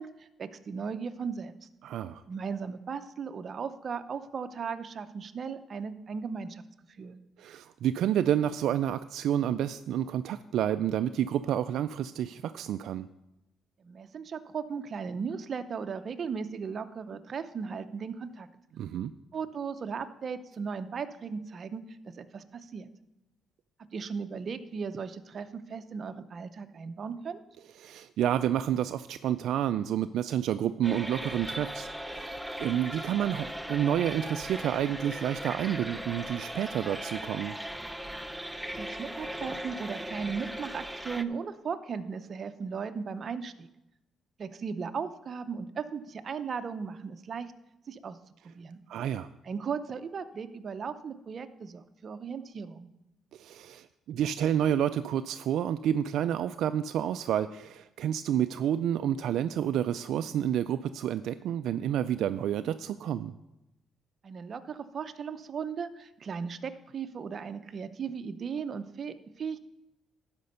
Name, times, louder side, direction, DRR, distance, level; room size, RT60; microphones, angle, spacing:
voice 1, 0.0-1.5 2.3-6.6 7.0-7.2 13.8-18.5 19.3-22.9 23.9-27.4 38.8-43.7 44.4-47.5 47.9-48.2 48.5-48.8 49.4-52.9 64.2-69.6, right 6 dB, 50° right, 10 dB, 0.7 m, -37 dB
voice 2, 1.8-2.2 7.4-13.1 18.8-19.1 27.8-37.6 48.9-49.3 53.3-63.3, right 10 dB, 80° right, 10 dB, 0.3 m, -29 dB
sound 1, 30.8-41.2, equal, 5° right, 0.5 m, -38 dB
12.0 x 5.2 x 6.6 m, 0.92 s
cardioid pair, 90°, 0 cm